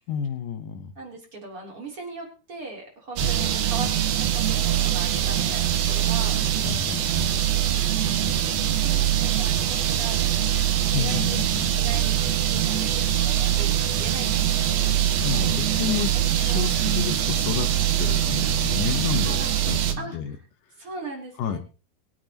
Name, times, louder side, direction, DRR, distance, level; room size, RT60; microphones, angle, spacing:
voice 1, 0.1-0.9 3.2-3.5 6.7-7.3 10.9-11.9 15.2-16.1 16.4-17.7 18.0-19.4 19.7-20.4 21.4-21.6, left 8 dB, 70° left, 8 dB, 2.6 m, -30 dB
voice 2, 1.0-6.8 8.0-11.4 11.8-12.1 12.5-16.0 16.5-16.7 19.2-19.5 20.0-20.4 20.8-21.6, right 3 dB, 40° right, -1 dB, 4.0 m, -39 dB
sound 1, 3.2-19.9, right 11 dB, 85° right, 3.1 m, -23 dB
23.5 x 8.7 x 3.0 m, 0.35 s
omnidirectional pair, 4.2 m